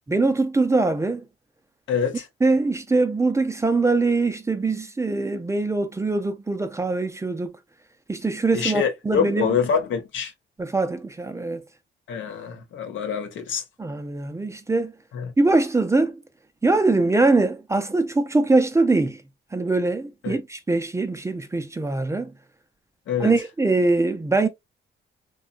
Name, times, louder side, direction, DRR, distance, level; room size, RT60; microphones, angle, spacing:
voice 1, 0.1-1.2 2.4-7.5 8.1-9.6 10.6-11.6 13.8-14.9 15.4-16.2 16.6-19.2 19.5-22.3 23.2-24.5, right 3 dB, 15° right, 0.4 m, -22 dB
voice 2, 1.9-2.3 8.5-10.3 12.1-13.6 15.1-15.3 20.2-20.4 23.1-23.3, left 7 dB, 75° left, 0.7 m, -25 dB
2.7 x 2.2 x 2.4 m
cardioid pair, 90°, 20 cm